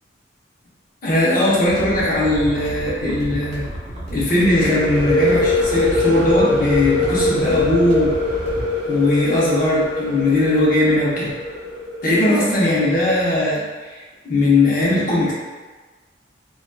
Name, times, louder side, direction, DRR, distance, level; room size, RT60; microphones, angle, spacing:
voice 1, 1.0-3.6 4.1-8.1 8.9-11.3 12.0-13.6 13.9-15.3, left 2 dB, 45° left, -7 dB, 0.7 m, -19 dB
sound 1, 1.7-8.7, equal, 35° right, 0.7 m, -32 dB
sound 2, 4.4-12.0, left 2 dB, 10° right, 1.5 m, -22 dB
2.7 x 2.2 x 2.2 m, 1.3 s
head